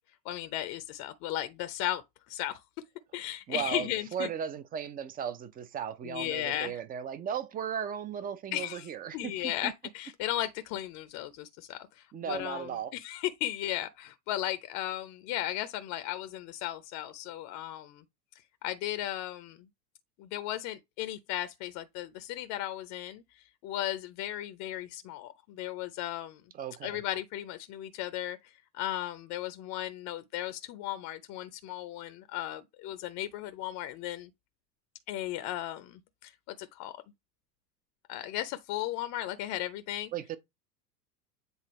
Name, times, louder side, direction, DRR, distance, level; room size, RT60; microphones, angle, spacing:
voice 1, 0.2-2.0 2.3-2.6 3.1-4.3 6.0-6.8 8.5-18.0 18.6-19.7 20.2-26.4 26.8-34.3 35.1-36.9 38.1-40.1, left 13 dB, 40° left, 0.7 m, -36 dB
voice 2, 3.5-9.7 12.1-12.9 26.5-27.0 40.1-40.4, right 8 dB, 20° right, 0.5 m, -36 dB
8.0 x 4.0 x 3.0 m
hypercardioid pair, 90°, 49 cm